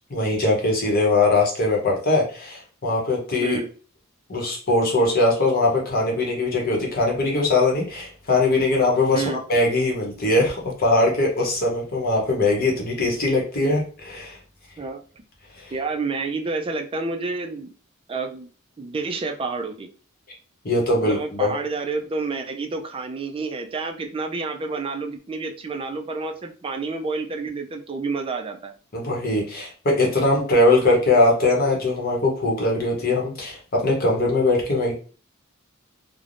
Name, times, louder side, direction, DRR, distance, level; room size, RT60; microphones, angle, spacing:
voice 1, 0.1-3.6 4.3-14.4 15.6-15.7 20.6-21.5 28.9-34.9, left 2 dB, 45° left, -2 dB, 0.9 m, -21 dB
voice 2, 15.7-17.7 18.1-18.5 18.8-19.9 21.0-28.7, right 3 dB, 25° right, 5 dB, 0.3 m, -29 dB
3.2 x 2.0 x 2.5 m, 0.39 s
head